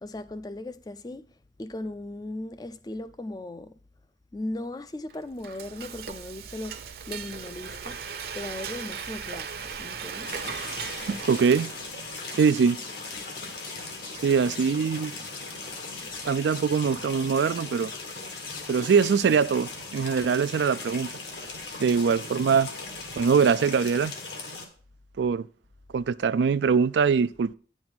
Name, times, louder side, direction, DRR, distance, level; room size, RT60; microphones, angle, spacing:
voice 1, 0.0-1.3 1.6-3.8 4.3-8.0 8.3-10.3, left 1 dB, 20° left, 0.4 m, -37 dB
Frying (food), 5.1-12.2, right 6 dB, 55° right, 0.7 m, -38 dB
sound 1, 10.2-24.7, left 3 dB, 75° left, 1.8 m, -39 dB
sound 2, 10.3-11.0 11.3-17.0 17.5-18.1 18.4-19.2, left 5 dB, 50° left, 1.3 m, -44 dB
voice 2, 11.1-11.7 12.4-12.8 14.2-15.1 16.3-17.9 18.7-21.1 21.8-22.7 23.2-24.1 25.2-25.5 25.9-27.5, right 6 dB, 80° right, 0.3 m, -23 dB
9.5 x 6.1 x 4.0 m
head